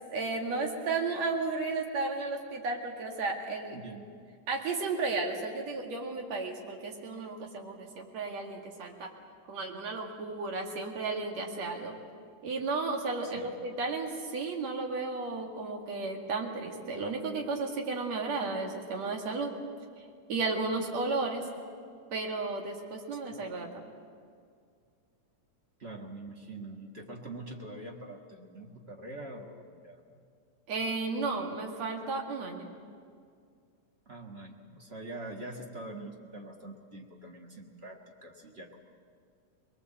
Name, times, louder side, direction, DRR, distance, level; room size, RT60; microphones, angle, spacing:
voice 1, 0.1-3.8 4.5-9.1 9.5-12.0 12.4-19.5 20.0-21.5 22.1-23.9 30.7-32.7, right 3 dB, 60° right, 1 dB, 3.3 m, -33 dB
voice 2, 3.7-4.1 13.2-13.5 25.8-30.2 34.1-38.8, right 2 dB, 30° right, 1 dB, 1.3 m, -44 dB
23.5 x 21.5 x 7.9 m, 2.2 s
omnidirectional pair, 3.6 m